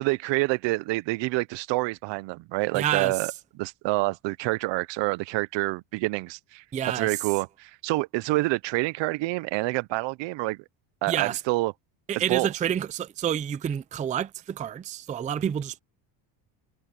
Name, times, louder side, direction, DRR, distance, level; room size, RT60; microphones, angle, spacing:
voice 1, 0.0-3.3 3.6-6.6 6.9-10.6 11.0-11.7 12.2-12.5, right 22 dB, 70° right, 0.7 m, -27 dB
voice 2, 2.7-3.1 6.7-7.1 11.1-11.4 12.1-15.8, right 9 dB, 20° right, 0.4 m, -28 dB
cardioid pair, 140°, 46 cm